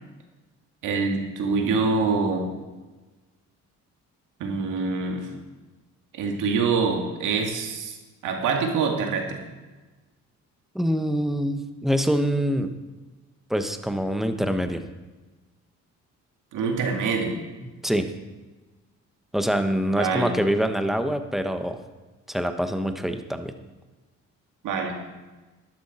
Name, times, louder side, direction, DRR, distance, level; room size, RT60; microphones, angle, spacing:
voice 1, 0.8-2.5 4.4-5.3 6.1-8.0 8.2-9.4 16.5-17.4 19.9-20.3 24.6-24.9, right 4 dB, 85° right, 2 dB, 2.1 m, -25 dB
voice 2, 10.7-12.7 13.5-14.8 17.8-18.1 19.3-21.8 22.3-23.5, equal, ahead, 7 dB, 1.0 m, -25 dB
12.0 x 11.5 x 4.3 m, 1.2 s
cardioid pair, 90°, 30 cm